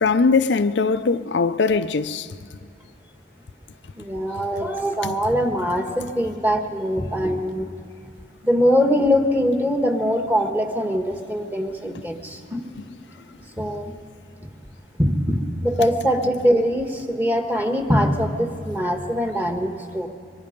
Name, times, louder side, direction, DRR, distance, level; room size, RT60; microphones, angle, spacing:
voice 1, 0.0-2.3 5.0-5.1, left 4 dB, 85° left, 0.6 m, -20 dB
voice 2, 4.0-7.7 8.4-12.7 13.6-13.9 14.4-14.5 15.0-20.1, equal, 10° right, 1.6 m, -22 dB
24.0 x 22.5 x 5.3 m
head